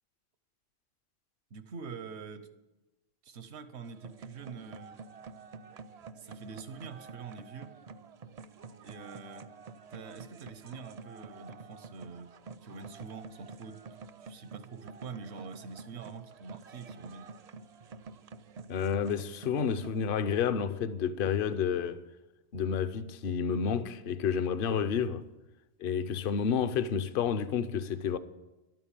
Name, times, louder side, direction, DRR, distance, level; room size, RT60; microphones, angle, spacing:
voice 1, 1.5-2.5 3.2-5.0 6.2-7.8 8.8-9.5 9.9-12.4 12.6-13.8 14.2-17.3, right 5 dB, 85° right, 1.2 m, -45 dB
sound 1, 3.8-20.0, right 4 dB, 50° right, 0.5 m, -48 dB
voice 2, 18.7-22.0 22.5-25.3 25.8-28.2, left 7 dB, 60° left, 0.8 m, -30 dB
12.0 x 9.1 x 8.8 m
omnidirectional pair, 1.1 m